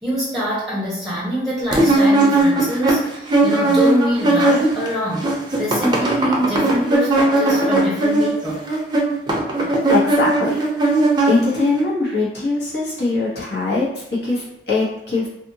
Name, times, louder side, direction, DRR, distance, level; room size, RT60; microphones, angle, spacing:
voice 1, 0.0-5.3 5.6-8.6, equal, ahead, -6 dB, 0.8 m, -24 dB
sound 1, 1.7-4.9 5.1-11.8, right 2 dB, 25° right, 0.5 m, -18 dB
voice 2, 9.9-10.6 11.3-15.3, left 3 dB, 70° left, -6 dB, 1.2 m, -21 dB
2.6 x 2.5 x 2.8 m, 0.80 s
head